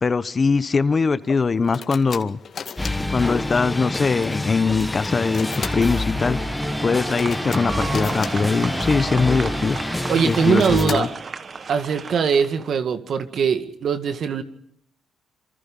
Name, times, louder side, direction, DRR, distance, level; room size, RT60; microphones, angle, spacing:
voice 1, 0.0-2.4 3.1-6.4 6.8-9.8 10.2-11.1, left 4 dB, 35° left, 15 dB, 1.0 m, -21 dB
sound 1, 1.2-12.4, left 6 dB, 50° left, 2.1 m, -39 dB
sound 2, 2.8-10.9, left 1 dB, 10° left, 1.3 m, -27 dB
sound 3, 5.3-12.6, right 5 dB, 40° right, 1.1 m, -34 dB
voice 2, 10.1-11.1 11.7-14.4, right 6 dB, 60° right, 9 dB, 2.0 m, -21 dB
27.5 x 24.5 x 5.5 m, 0.71 s
cardioid pair, 90°, 0 cm